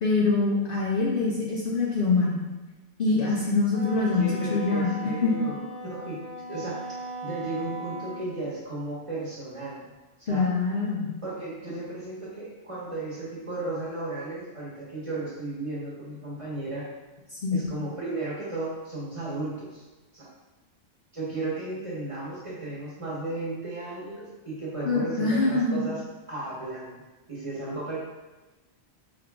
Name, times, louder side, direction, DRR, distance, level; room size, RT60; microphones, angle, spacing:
voice 1, 0.0-2.4 3.0-5.3 10.3-11.1 17.3-17.7 24.8-25.8, left 3 dB, 55° left, -4 dB, 0.7 m, -24 dB
Wind instrument woodwind instrument, 3.7-8.2, equal, 10° left, 1.3 m, -38 dB
voice 2, 4.1-6.2 6.5-9.9 10.2-10.4 11.2-16.8 17.5-19.8 20.1-20.3 21.1-26.0 26.3-27.0 27.3-28.0, right 2 dB, 30° right, -7 dB, 1.1 m, -34 dB
4.9 x 3.6 x 2.3 m, 1.2 s
omnidirectional pair, 1.3 m